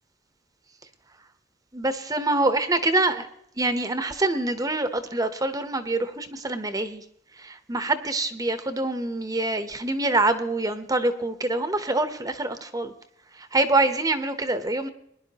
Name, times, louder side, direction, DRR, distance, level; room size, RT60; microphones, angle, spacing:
voice 1, 1.7-3.3 3.6-7.0 7.4-12.9 13.5-14.9, right 2 dB, 20° right, 10 dB, 0.8 m, -25 dB
21.0 x 11.0 x 2.9 m, 0.74 s
head